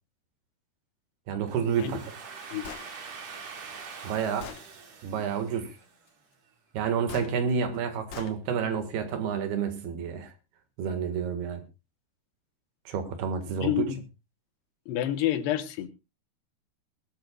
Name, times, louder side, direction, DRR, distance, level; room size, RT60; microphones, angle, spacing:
voice 1, 1.3-2.0 4.0-4.5 5.0-5.7 6.7-10.3 10.8-11.6 12.9-13.9, right 6 dB, 75° right, 8 dB, 3.6 m, -29 dB
Domestic sounds home sounds, 1.5-6.2, right 5 dB, 50° right, 3.0 m, -44 dB
Gunshot gunfire, 2.6-2.9 3.8-3.9 4.4-4.7 7.1-7.3 8.1-8.4, left 7 dB, 60° left, 2.0 m, -41 dB
voice 2, 13.6-14.0 14.9-15.9, left 12 dB, 85° left, 10 dB, 3.3 m, -28 dB
20.5 x 13.0 x 2.3 m, 0.28 s
omnidirectional pair, 4.6 m